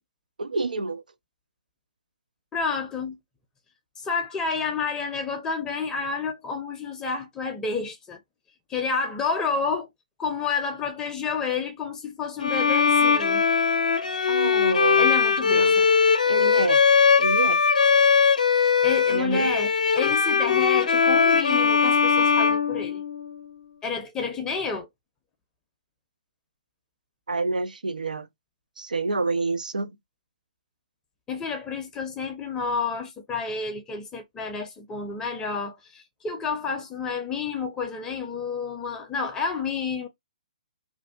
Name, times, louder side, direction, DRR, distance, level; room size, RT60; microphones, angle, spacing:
voice 1, 0.4-1.0 14.3-15.1 15.5-15.7 16.3-16.8 17.2-17.6 19.1-19.5 27.3-28.3 28.8-29.9, right 3 dB, 85° right, 0.3 m, -27 dB
voice 2, 2.5-3.2 4.0-8.2 8.7-9.9 10.2-13.4 15.0-15.9 18.8-23.0 23.8-24.9 31.3-40.1, left 5 dB, 15° left, 0.5 m, -30 dB
Bowed string instrument, 12.4-23.4, left 6 dB, 70° left, 0.6 m, -20 dB
2.6 x 2.3 x 2.3 m
figure-of-eight pair, 130°, 4 cm